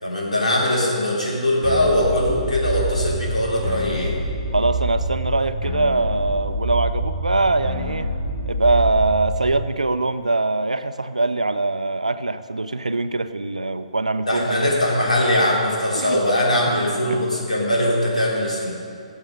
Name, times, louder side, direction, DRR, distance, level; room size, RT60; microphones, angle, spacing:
voice 1, 0.0-4.2 14.3-18.7, left 1 dB, 80° left, -4 dB, 3.8 m, -21 dB
sound 1, 1.6-9.6, right 1 dB, 15° left, 2.6 m, -27 dB
voice 2, 4.5-8.1 8.5-14.7 15.9-16.2 17.1-17.2, right 3 dB, 85° right, 11 dB, 0.6 m, -22 dB
17.5 x 7.3 x 5.4 m, 2.3 s
figure-of-eight pair, 130°, 4 cm